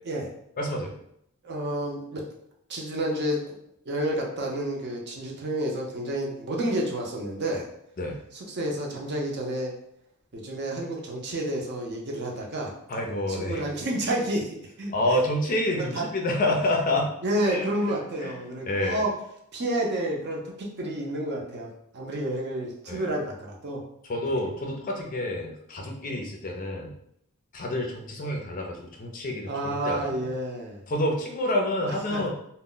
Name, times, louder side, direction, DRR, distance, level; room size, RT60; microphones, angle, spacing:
voice 1, 0.6-0.9 8.0-8.2 12.9-13.6 14.9-17.1 17.5-17.7 18.2-18.3 18.7-19.0 22.9-23.1 24.0-26.9 27.5-30.3 30.9-32.3, left 1 dB, 40° left, 1 dB, 0.4 m, -28 dB
voice 2, 1.4-2.3 2.7-3.6 3.9-7.7 8.3-9.7 10.3-12.7 13.3-15.2 15.8-16.1 17.2-19.2 19.5-23.8 29.5-30.8 32.1-32.3, right 1 dB, 50° right, -1 dB, 0.6 m, -30 dB
2.1 x 2.0 x 3.7 m, 0.74 s
head